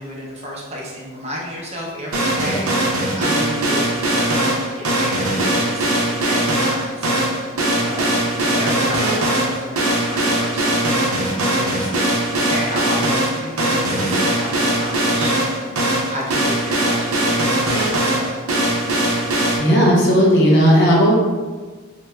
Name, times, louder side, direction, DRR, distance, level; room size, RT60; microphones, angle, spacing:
voice 1, 0.0-8.1 8.4-11.9 12.3-18.3, equal, 30° right, -3 dB, 0.6 m, -32 dB
sound 1, 2.1-19.6, right 1 dB, 80° right, 0.6 m, -20 dB
voice 2, 19.6-21.1, equal, 55° left, -4 dB, 0.7 m, -14 dB
3.2 x 2.1 x 3.4 m, 1.3 s
head